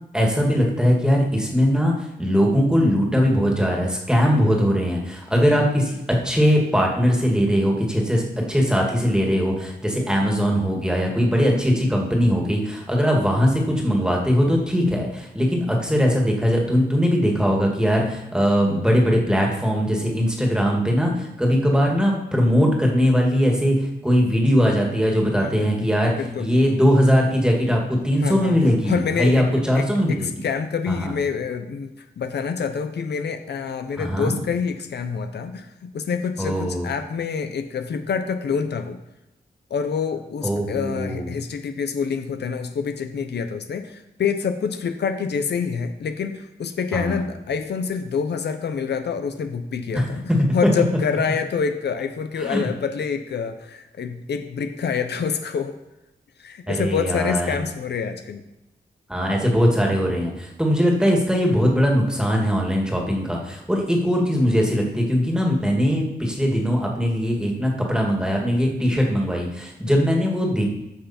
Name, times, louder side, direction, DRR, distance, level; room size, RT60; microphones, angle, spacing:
voice 1, 0.1-23.7 24.0-26.1 26.4-30.3 31.0-31.1 34.0-34.4 36.4-36.9 40.4-41.3 46.9-47.2 49.9-50.0 52.4-52.7 56.7-57.6 59.1-70.6, equal, 5° right, 0 dB, 2.0 m, -20 dB
voice 2, 5.3-5.6 25.4-25.9 26.2-26.5 28.2-29.5 29.7-39.0 39.7-50.2 50.5-55.8 56.4-58.4 69.9-70.0, left 6 dB, 80° left, 8 dB, 0.8 m, -27 dB
14.5 x 5.7 x 4.3 m, 0.92 s
wide cardioid pair, 125°, 17 cm